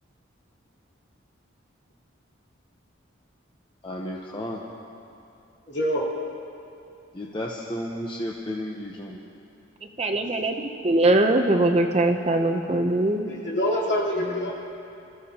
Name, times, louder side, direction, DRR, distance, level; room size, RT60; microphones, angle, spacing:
voice 1, 3.8-4.6 7.1-9.2, left 1 dB, 25° left, -2 dB, 0.8 m, -33 dB
voice 2, 5.7-6.0 13.3-14.5, equal, 60° left, -7 dB, 3.6 m, -25 dB
voice 3, 10.0-13.3, right 2 dB, 30° right, 4 dB, 0.7 m, -22 dB
26.5 x 14.0 x 2.9 m, 2.7 s
head